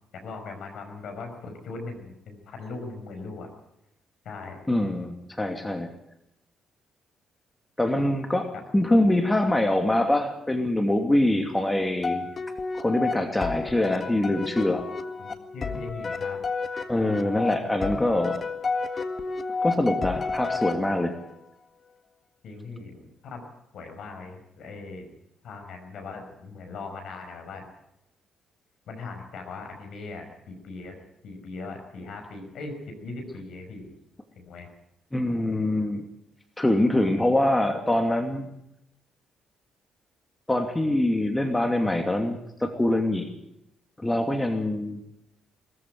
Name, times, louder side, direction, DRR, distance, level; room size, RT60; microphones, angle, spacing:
voice 1, 0.2-3.5 4.2-4.7 15.2-16.4 22.4-23.4 23.7-25.1 25.4-27.6 28.9-31.0 31.2-33.9 34.4-34.7, left 3 dB, 65° left, 5 dB, 5.7 m, -39 dB
voice 2, 4.7-5.9 7.8-12.3 12.7-14.8 16.9-18.4 19.6-21.1 35.1-36.0 36.6-38.5 40.5-43.3 44.0-45.0, left 1 dB, 15° left, 5 dB, 2.6 m, -24 dB
sound 1, 12.0-21.3, left 4 dB, 45° left, 1.8 m, -31 dB
21.0 x 14.5 x 9.2 m, 0.83 s
hypercardioid pair, 45°, 0 cm